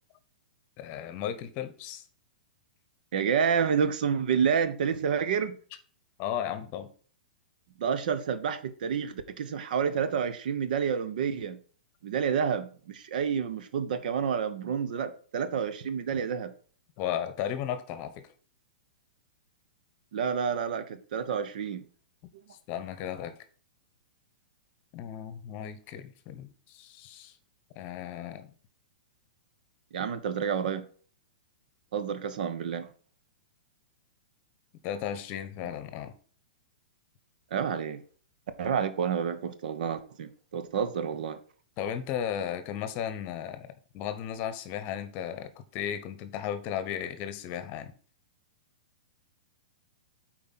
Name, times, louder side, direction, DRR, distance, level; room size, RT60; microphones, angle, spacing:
voice 1, 0.8-2.0 6.2-6.9 17.0-18.3 22.7-23.4 24.9-27.4 27.8-28.5 34.8-36.1 41.8-47.9, left 9 dB, 40° left, 1.0 m, -35 dB
voice 2, 3.1-5.6 7.8-11.6 12.0-16.5 20.1-21.8 29.9-30.9 31.9-32.9 37.5-38.0 38.6-41.4, right 7 dB, 65° right, 1.0 m, -29 dB
8.6 x 4.5 x 4.2 m
hypercardioid pair, 130°, 5 cm